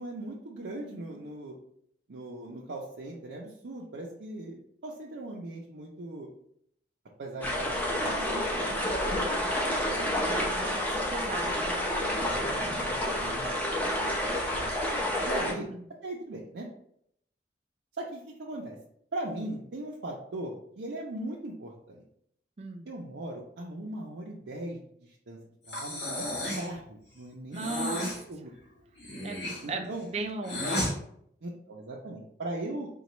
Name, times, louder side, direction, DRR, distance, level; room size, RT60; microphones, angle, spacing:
voice 1, 0.0-1.6 2.1-6.3 7.2-8.8 9.1-11.2 12.2-13.5 14.0-14.2 14.5-14.7 15.2-15.7 16.0-16.7 17.9-18.8 19.1-22.0 22.9-25.4 25.6-26.3 26.6-28.5 29.6-30.0 31.4-32.9, right 1 dB, 85° right, -4 dB, 0.5 m, -39 dB
sound 1, 7.4-15.5, left 1 dB, 10° left, 0.6 m, -29 dB
voice 2, 10.3-11.9 15.5-15.9 22.6-22.9 27.5-28.1 29.2-31.0, right 3 dB, 35° right, 4 dB, 0.4 m, -38 dB
Breathing, 25.7-26.7 27.5-28.2 29.0-30.9, left 1 dB, 75° left, 1.2 m, -33 dB
4.1 x 2.3 x 3.0 m, 0.69 s
head